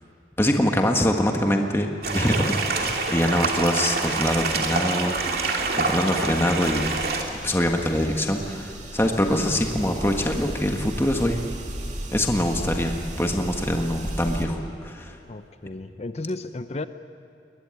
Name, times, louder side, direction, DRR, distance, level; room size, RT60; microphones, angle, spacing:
voice 1, 0.4-6.9 7.4-11.4 12.1-15.2, left 1 dB, 15° left, 2 dB, 1.5 m, -24 dB
sound 1, 2.0-7.2, right 3 dB, 60° right, 2.7 m, -26 dB
sound 2, 6.8-14.5, right 1 dB, 45° right, 2.5 m, -35 dB
voice 2, 15.3-16.9, left 2 dB, 35° left, 11 dB, 0.7 m, -33 dB
21.5 x 21.0 x 9.5 m, 2.6 s
head